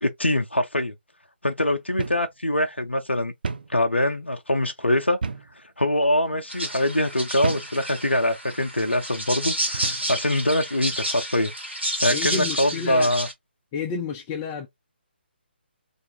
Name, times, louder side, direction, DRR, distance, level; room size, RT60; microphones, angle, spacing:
voice 1, 0.0-0.9 1.4-3.3 3.7-5.2 5.8-11.5 12.0-13.3, left 1 dB, 90° left, 0.4 m, -23 dB
sound 1, 2.0-2.3 2.6-2.7 3.4-3.8 5.2-5.6 6.3-6.5 7.4-7.8 8.5-8.7 9.7-10.1, right 4 dB, 55° right, 0.4 m, -31 dB
sound 2, 6.5-13.3, right 1 dB, 85° right, 1.2 m, -30 dB
voice 2, 12.1-13.1 13.7-14.7, left 6 dB, 20° left, 0.4 m, -30 dB
2.5 x 2.3 x 2.7 m
figure-of-eight pair, 140°, 6 cm